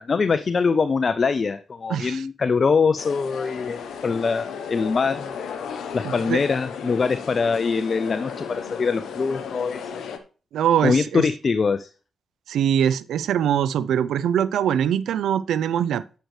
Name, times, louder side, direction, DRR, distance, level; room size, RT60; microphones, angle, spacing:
voice 1, 0.0-5.3 5.9-10.0 10.8-11.9, left 5 dB, 50° left, 0.4 m, -23 dB
voice 2, 1.9-2.2 6.0-6.4 10.5-11.3 12.5-16.0, right 9 dB, 75° right, 0.4 m, -22 dB
sound 1, 3.0-10.2, left 6 dB, 70° left, 0.9 m, -34 dB
10.0 x 6.3 x 3.2 m
hypercardioid pair, 40°, 0 cm